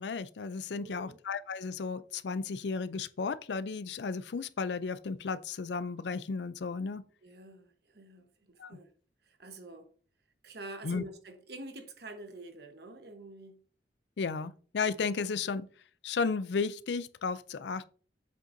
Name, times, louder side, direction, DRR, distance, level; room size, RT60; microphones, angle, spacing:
voice 1, 0.0-7.0 8.6-8.8 10.8-11.0 14.2-15.7 16.0-17.8, left 5 dB, 70° left, 0.4 m, -34 dB
voice 2, 0.7-1.2 7.2-8.3 8.7-8.9 9.3-9.9 10.4-13.6, right 2 dB, 60° right, 1.2 m, -47 dB
7.8 x 6.4 x 2.7 m
head